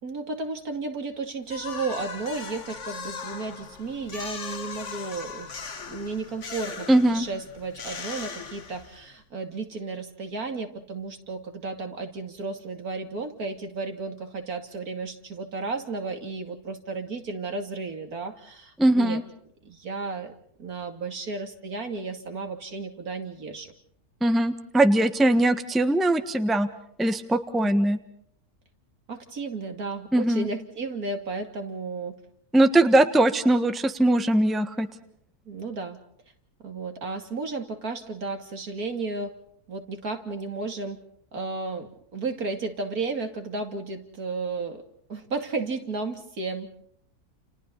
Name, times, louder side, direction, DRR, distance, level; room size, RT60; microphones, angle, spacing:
voice 1, 0.0-5.5 5.9-19.2 19.6-20.3 20.6-23.7 27.6-27.7 29.1-32.2 35.5-36.0 36.6-39.3 39.7-41.0 41.3-44.8 45.1-46.7, right 3 dB, 70° right, 5 dB, 3.1 m, -33 dB
sound 1, 1.5-9.1, left 5 dB, 50° left, 1.8 m, -39 dB
voice 2, 6.9-7.2 18.8-19.2 24.2-26.7 27.0-28.0 30.1-30.5 32.5-34.9, right 1 dB, ahead, 9 dB, 1.2 m, -21 dB
30.0 x 29.5 x 4.0 m, 0.68 s
omnidirectional pair, 1.6 m